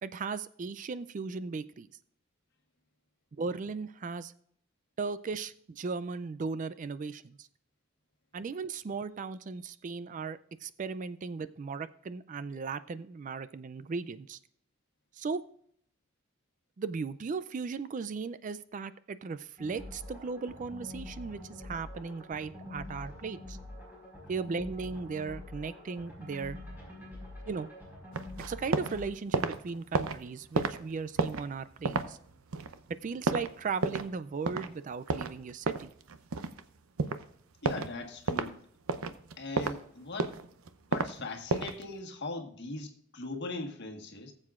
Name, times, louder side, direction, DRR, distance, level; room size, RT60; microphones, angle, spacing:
voice 1, 0.0-1.9 3.4-4.3 5.0-7.5 8.3-14.4 15.1-15.4 16.8-23.6 24.3-26.6 27.5-27.7 28.5-32.2 32.9-35.9, right 4 dB, 35° right, 0.3 m, -37 dB
sound 1, 19.6-29.1, left 1 dB, 10° right, 4.7 m, -46 dB
sound 2, 28.1-29.0 29.2-34.2 34.5-34.7 35.1-36.6 37.0-37.2 37.6-37.9 38.3-38.5 38.9-39.8 40.1-41.1 41.5-41.8, right 4 dB, 85° right, 0.7 m, -31 dB
voice 2, 37.6-38.6 39.4-40.3 40.9-44.3, left 2 dB, 55° left, 1.4 m, -40 dB
19.0 x 7.5 x 2.4 m
head